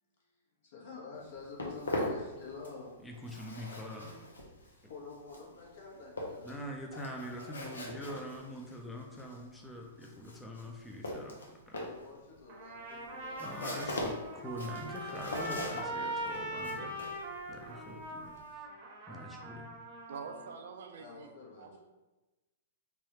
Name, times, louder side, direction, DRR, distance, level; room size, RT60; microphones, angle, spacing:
voice 1, 0.6-2.9 4.9-6.5 11.8-13.6 21.0-21.8, left 4 dB, 60° left, -2 dB, 1.0 m, -48 dB
Walk footsteps, 1.1-2.9 3.1-18.5, left 1 dB, 90° left, 0.7 m, -41 dB
voice 2, 3.0-4.2 6.4-11.9 13.4-17.1 17.5-18.6 19.1-19.7, equal, 10° left, 0 dB, 0.5 m, -44 dB
Trumpet, 12.5-20.5, right 1 dB, 40° right, 0.7 m, -41 dB
voice 3, 20.1-21.3 21.6-21.8, right 5 dB, 70° right, 5 dB, 0.4 m, -45 dB
3.3 x 2.2 x 3.0 m, 1.1 s
hypercardioid pair, 125°, 0 cm